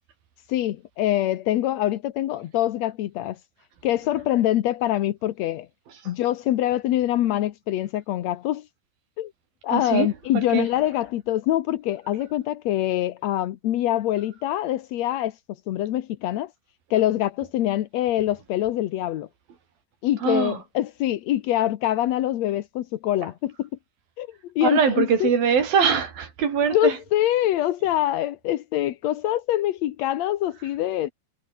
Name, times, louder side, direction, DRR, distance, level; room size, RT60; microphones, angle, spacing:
voice 1, 0.5-3.4 3.8-5.7 6.1-8.7 9.2-9.3 9.6-15.4 15.7-16.5 16.9-19.3 20.0-23.7 24.2-24.3 24.6-25.3 26.7-31.1, left 13 dB, 65° left, 1.8 m, -24 dB
voice 2, 9.7-10.1 10.3-10.7 20.2-20.6 24.6-27.0, right 7 dB, 75° right, 5.2 m, -22 dB
omnidirectional pair, 4.2 m